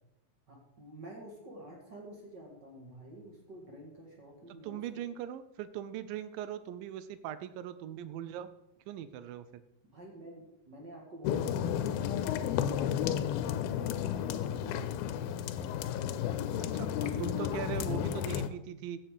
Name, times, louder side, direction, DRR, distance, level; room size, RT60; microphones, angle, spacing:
voice 1, 0.5-4.8 9.9-17.9, right 1 dB, 40° right, 0 dB, 1.7 m, -49 dB
voice 2, 4.5-8.5 8.9-9.6 16.8-19.0, right 10 dB, 80° right, 13 dB, 2.2 m, -40 dB
sound 1, 11.2-18.5, left 9 dB, 85° left, 2.5 m, -32 dB
15.0 x 7.6 x 4.9 m, 0.85 s
omnidirectional pair, 4.5 m